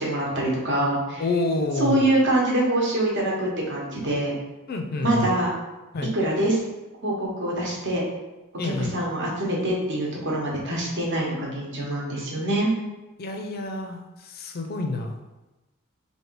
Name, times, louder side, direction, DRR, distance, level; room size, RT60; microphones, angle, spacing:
voice 1, 0.0-1.2 1.8-4.4 5.0-5.5 6.1-6.6 7.0-8.0 8.6-12.7, right 1 dB, 55° right, -3 dB, 1.1 m, -24 dB
voice 2, 1.2-2.1 4.7-5.3 5.9-6.1 8.6-9.0 13.2-14.0 14.3-15.2, left 2 dB, 45° left, 4 dB, 0.5 m, -28 dB
3.2 x 2.8 x 4.5 m, 1.1 s
head